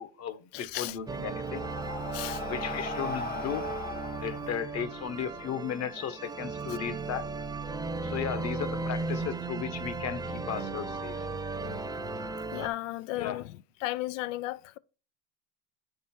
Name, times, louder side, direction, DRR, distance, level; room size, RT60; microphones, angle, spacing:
voice 1, 0.0-1.7 2.5-3.7 4.2-7.3 8.0-11.2 13.1-13.4, left 8 dB, 40° left, 1.1 m, -35 dB
voice 2, 0.5-0.9 2.1-2.4 11.6-11.8 12.5-13.4 13.8-14.8, left 17 dB, 75° left, 0.7 m, -34 dB
Breathing, 0.7-5.4, left 3 dB, 25° left, 0.8 m, -39 dB
sound 1, 1.1-12.7, right 3 dB, 10° right, 0.8 m, -36 dB
9.9 x 5.3 x 4.3 m
supercardioid pair, 115°, 38 cm